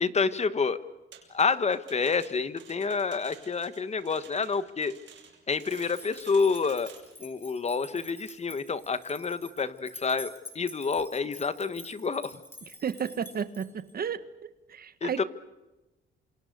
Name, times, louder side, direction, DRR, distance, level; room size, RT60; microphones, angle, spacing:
voice 1, 0.0-0.8 1.3-4.9 5.5-6.9 7.2-12.4 15.0-15.2, left 5 dB, 35° left, 13 dB, 1.3 m, -28 dB
sound 1, 1.1-7.2, right 7 dB, 70° right, 6.6 m, -53 dB
sound 2, 5.6-13.9, left 1 dB, 10° left, 5.5 m, -48 dB
voice 2, 12.8-15.2, right 7 dB, 50° right, 13 dB, 1.4 m, -33 dB
28.5 x 27.0 x 6.7 m, 1.0 s
cardioid pair, 90°, 20 cm